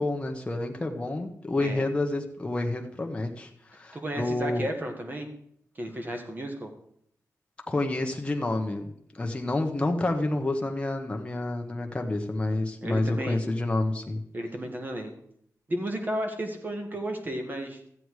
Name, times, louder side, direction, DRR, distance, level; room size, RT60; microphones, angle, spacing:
voice 1, 0.0-4.7 7.7-14.2, left 2 dB, 20° left, 2 dB, 1.0 m, -29 dB
voice 2, 3.9-5.3 5.8-6.7 12.5-13.4 14.3-15.1 15.7-17.8, right 1 dB, 30° right, 4 dB, 1.7 m, -33 dB
13.5 x 8.0 x 4.8 m, 0.69 s
wide cardioid pair, 135°, 6 cm